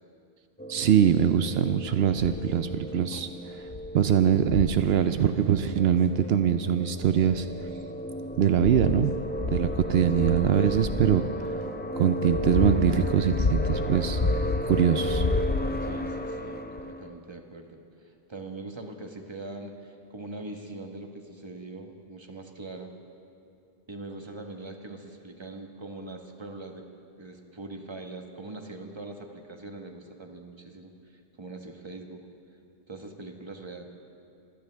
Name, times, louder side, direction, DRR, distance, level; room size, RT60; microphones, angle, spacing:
sound 1, 0.6-17.1, equal, 15° left, 0.5 m, -35 dB
voice 1, 0.7-3.3 3.9-7.5 8.4-9.1 9.5-11.3 12.0-15.3, right 9 dB, 80° right, 10 dB, 0.8 m, -23 dB
sound 2, 2.2-2.5 3.1-3.2 3.7-3.9 4.4-4.8 6.2-6.3 7.1-7.8 8.3-11.2 11.9-14.7 15.0-15.9 16.8-16.9, left 3 dB, 45° left, 1.1 m, -30 dB
voice 2, 10.2-10.8 15.8-22.9 23.9-26.8 27.2-32.2 32.9-33.8, right 2 dB, 25° right, 3 dB, 1.3 m, -42 dB
25.5 x 16.5 x 3.4 m, 2.5 s
omnidirectional pair, 1.0 m